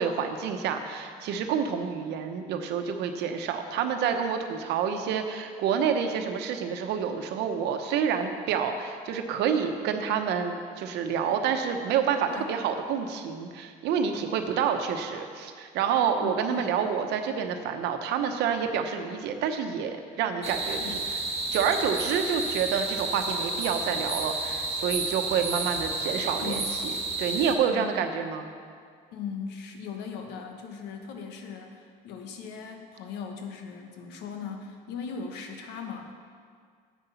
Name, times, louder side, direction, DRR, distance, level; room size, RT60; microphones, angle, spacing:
voice 1, 0.0-21.0 21.5-26.9 27.2-28.5, right 7 dB, 85° right, 6 dB, 1.0 m, -28 dB
voice 2, 16.2-16.7 20.8-21.0 26.2-26.7 27.6-28.0 29.1-36.1, left 6 dB, 90° left, 4 dB, 1.3 m, -39 dB
sound 1, 20.4-27.5, right 3 dB, 40° right, 1.8 m, -31 dB
9.8 x 8.1 x 5.7 m, 2.1 s
cardioid pair, 110°, 17 cm